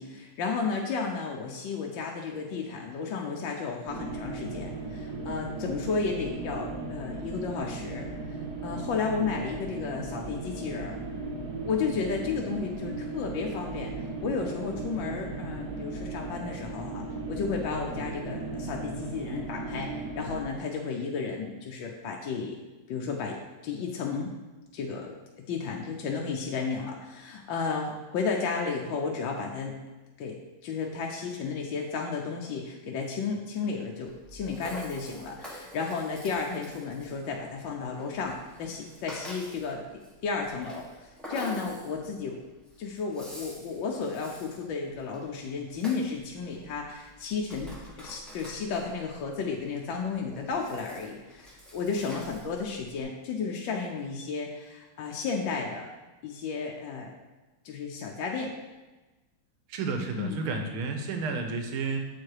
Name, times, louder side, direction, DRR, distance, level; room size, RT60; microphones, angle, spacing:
voice 1, 0.0-8.1 8.6-11.0 11.6-13.9 14.2-22.6 22.9-23.4 23.6-24.3 24.7-25.1 25.5-29.8 30.2-39.8 40.2-42.4 42.8-55.9 56.2-57.1 57.6-58.5 60.2-60.4, left 5 dB, 70° left, 0 dB, 1.4 m, -33 dB
sound 1, 3.9-20.4, right 3 dB, 55° right, 1.4 m, -37 dB
Rattle (instrument), 34.0-53.0, equal, ahead, 0.6 m, -47 dB
voice 2, 59.7-62.0, right 4 dB, 75° right, 5 dB, 1.7 m, -31 dB
7.9 x 4.7 x 4.7 m, 1.2 s
omnidirectional pair, 2.4 m